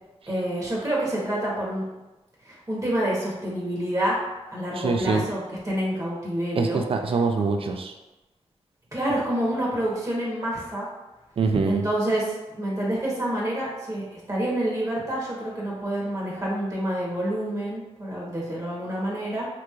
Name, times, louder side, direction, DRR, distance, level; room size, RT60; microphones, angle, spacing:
voice 1, 0.3-1.8 2.4-4.2 4.5-6.8 8.9-10.9 11.7-19.5, right 1 dB, 30° right, -5 dB, 1.1 m, -28 dB
voice 2, 4.8-5.2 6.6-7.9 11.4-11.9, right 4 dB, 60° right, 4 dB, 0.4 m, -24 dB
3.5 x 3.1 x 2.4 m, 1.1 s
wide cardioid pair, 80°, 11 cm